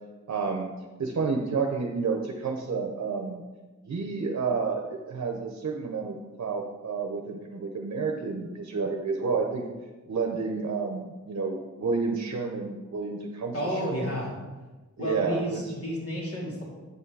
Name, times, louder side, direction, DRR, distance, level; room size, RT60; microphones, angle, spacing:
voice 1, 0.3-0.7 1.0-3.4 3.8-9.6 10.1-13.9 15.0-15.6, right 4 dB, 60° right, 2 dB, 0.8 m, -30 dB
voice 2, 13.5-14.3 15.0-16.6, equal, 50° left, -4 dB, 2.7 m, -31 dB
8.1 x 5.8 x 4.8 m, 1.2 s
wide cardioid pair, 80°, 30 cm